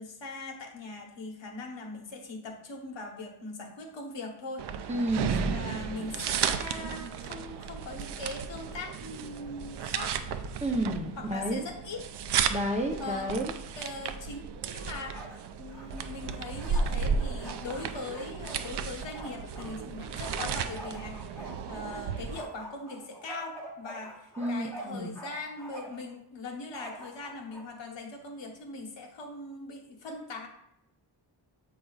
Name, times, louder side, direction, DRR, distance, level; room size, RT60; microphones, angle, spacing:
voice 1, 0.0-4.7 5.4-10.2 11.2-12.0 13.0-13.3 13.7-15.2 15.6-30.5, left 3 dB, 80° left, 2 dB, 1.2 m, -41 dB
sound 1, 4.6-22.4, right 6 dB, 70° right, 0.5 m, -34 dB
voice 2, 4.9-5.6 10.6-11.6 12.5-13.5 24.4-25.2, right 1 dB, 15° right, 1 dB, 0.6 m, -31 dB
Bark, 14.8-15.4 15.7-19.7 20.2-22.0 22.3-25.3 25.6-26.1 26.7-27.7, right 1 dB, 5° left, 1.1 m, -45 dB
7.7 x 5.0 x 2.4 m, 0.78 s
wide cardioid pair, 175°, 43 cm